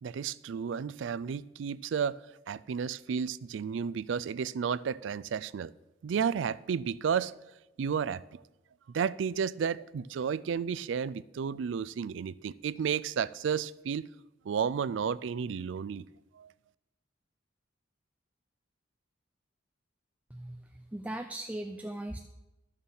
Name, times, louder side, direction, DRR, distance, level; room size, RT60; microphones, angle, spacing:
voice 1, 0.0-2.2 2.5-5.7 6.0-7.3 7.8-8.2 8.9-14.1 14.5-16.1 16.4-16.5, right 7 dB, 70° right, 0.3 m, -32 dB
voice 2, 20.3-22.2, right 1 dB, 10° right, 0.4 m, -39 dB
13.0 x 6.5 x 5.5 m
head